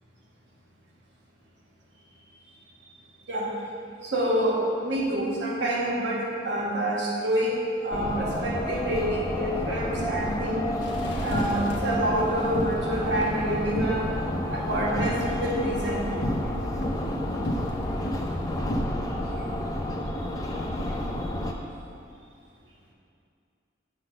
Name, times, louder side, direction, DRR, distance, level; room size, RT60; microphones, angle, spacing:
voice 1, 4.0-7.5 7.8-10.7 11.2-14.1 14.5-16.0, right 1 dB, 65° right, -4 dB, 1.6 m, -27 dB
sound 1, 7.9-21.5, left 1 dB, 20° left, 0.5 m, -30 dB
sound 2, 10.8-18.9, equal, 70° left, 0.9 m, -34 dB
8.9 x 3.9 x 6.7 m, 2.4 s
head